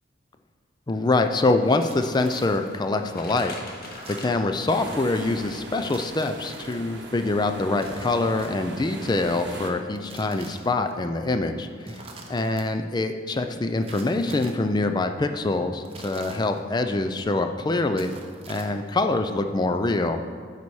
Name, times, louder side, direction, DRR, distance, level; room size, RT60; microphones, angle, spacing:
voice 1, 0.9-3.5 4.2-12.0 12.3-18.1 18.5-20.2, left 2 dB, 20° left, 7 dB, 0.4 m, -25 dB
sound 1, 1.6-6.6, left 1 dB, 50° left, 1.1 m, -44 dB
sound 2, 1.8-2.8 3.8-4.7 5.8-6.8 7.8-8.9 9.8-10.9 11.8-12.6 13.8-14.7 15.8-16.9 17.8-19.0, right 3 dB, 30° right, 0.7 m, -45 dB
sound 3, 4.7-9.7, right 2 dB, 60° right, 0.8 m, -39 dB
9.5 x 4.2 x 4.7 m, 2.1 s
head